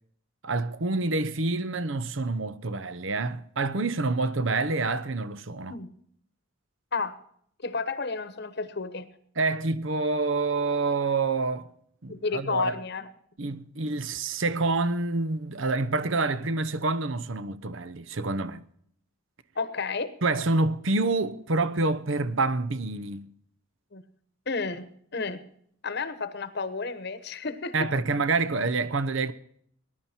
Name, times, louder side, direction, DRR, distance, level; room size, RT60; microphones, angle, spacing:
voice 1, 0.4-5.8 9.4-11.7 12.0-12.7 13.4-18.6 20.2-23.3 27.7-29.3, right 3 dB, 65° right, 0.9 m, -27 dB
voice 2, 7.6-9.1 12.1-13.1 19.6-20.1 23.9-24.0 24.5-24.9 25.1-25.4 25.8-27.9, left 4 dB, 55° left, 1.1 m, -31 dB
19.5 x 11.5 x 4.5 m
head